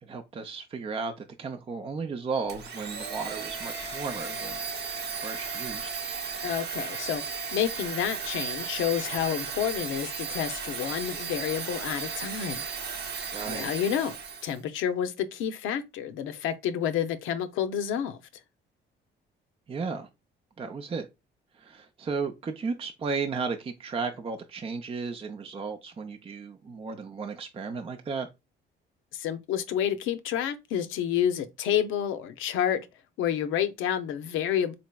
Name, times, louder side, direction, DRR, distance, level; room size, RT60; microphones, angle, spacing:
voice 1, 0.0-4.6 5.0-5.9 13.3-13.7 19.7-20.1 20.6-21.1 21.5-28.3, right 4 dB, 30° right, 0.5 m, -34 dB
Domestic sounds home sounds, 2.5-14.6, right 5 dB, 55° right, 0.8 m, -35 dB
voice 2, 6.4-7.2 7.5-12.7 13.5-14.2 14.4-18.2 29.1-32.9 33.2-34.7, left 9 dB, 90° left, 0.5 m, -29 dB
4.0 x 3.2 x 2.2 m
cardioid pair, 90°, 20 cm